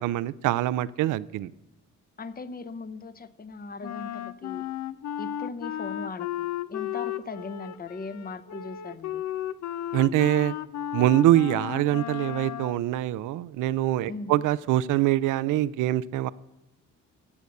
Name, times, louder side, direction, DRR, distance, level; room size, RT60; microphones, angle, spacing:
voice 1, 0.0-1.5 9.9-10.5 10.9-16.3, right 14 dB, 85° right, 18 dB, 0.6 m, -24 dB
voice 2, 2.2-4.7 5.2-9.2 14.1-14.4, left 4 dB, 30° left, 13 dB, 0.9 m, -39 dB
Wind instrument woodwind instrument, 3.8-12.8, left 11 dB, 65° left, 0.6 m, -34 dB
15.5 x 6.9 x 7.9 m, 0.97 s
cardioid pair, 90°, 30 cm